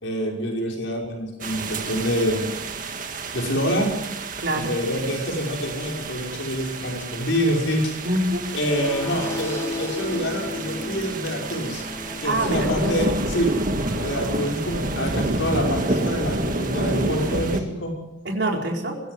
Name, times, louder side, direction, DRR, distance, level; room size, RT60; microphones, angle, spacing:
voice 1, 0.0-2.5 3.3-3.9 4.5-8.0 8.5-11.9 12.2-13.5 14.0-17.9, equal, 70° left, 0 dB, 6.0 m, -26 dB
sound 1, 1.4-17.6, right 2 dB, 45° right, 1.9 m, -29 dB
voice 2, 4.4-4.7 8.0-8.4 12.2-13.0 18.2-19.0, right 1 dB, 60° right, 1 dB, 4.6 m, -25 dB
sound 2, 8.5-14.5, left 2 dB, 15° left, 4.8 m, -35 dB
23.0 x 16.0 x 7.9 m, 0.92 s
head